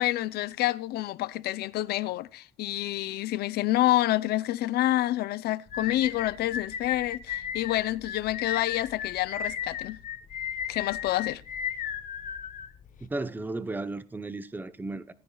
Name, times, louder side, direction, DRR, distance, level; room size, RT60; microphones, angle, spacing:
voice 1, 0.0-10.0 10.7-11.4, left 15 dB, 70° left, 0.5 m, -28 dB
sound 1, 5.7-13.1, left 9 dB, 50° left, 0.9 m, -35 dB
voice 2, 13.0-15.1, right 2 dB, 10° right, 0.7 m, -34 dB
17.5 x 9.8 x 2.3 m
cardioid pair, 110°, 17 cm